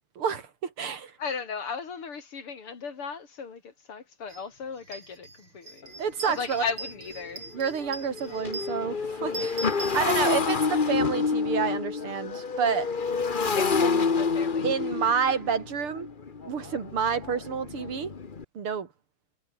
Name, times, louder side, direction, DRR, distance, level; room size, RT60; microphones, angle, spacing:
voice 1, 0.2-1.1 6.0-6.6 7.5-9.7 9.9-12.9 13.8-14.1 14.6-16.1 16.4-18.1 18.5-18.9, right 6 dB, 80° right, 3.3 m, -29 dB
voice 2, 1.2-5.9 6.3-7.5 10.0-10.3 13.5-15.4, left 5 dB, 90° left, 4.0 m, -37 dB
sound 1, 4.3-4.4 4.8-10.6, right 3 dB, 60° right, 5.8 m, -41 dB
Motorcycle, 5.8-5.9 6.4-6.6 6.8-18.4, left 5 dB, 30° left, 1.1 m, -28 dB
omnidirectional pair, 2.4 m